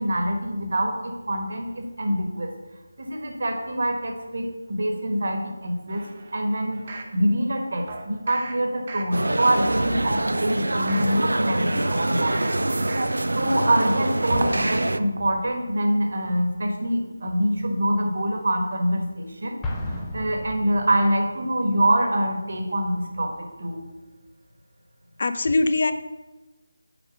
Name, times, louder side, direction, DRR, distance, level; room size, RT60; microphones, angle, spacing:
voice 1, 0.0-2.5 3.0-6.1 6.3-12.6 13.3-19.6 19.9-23.8, right 1 dB, 50° right, 3 dB, 1.5 m, -25 dB
sound 1, 5.9-7.1 7.9-8.5 8.9-9.4 9.8-11.1 11.9-12.5 12.9-13.4 13.8-13.9, right 3 dB, 35° right, 0.9 m, -40 dB
sound 2, 9.1-15.0, right 1 dB, 65° right, 0.5 m, -25 dB
Explosion, 19.6-21.4, left 1 dB, 10° left, 0.7 m, -33 dB
voice 2, 25.2-25.9, left 2 dB, 45° left, 11 dB, 0.5 m, -21 dB
7.2 x 5.0 x 6.4 m, 1.1 s
figure-of-eight pair, 160°, 0 cm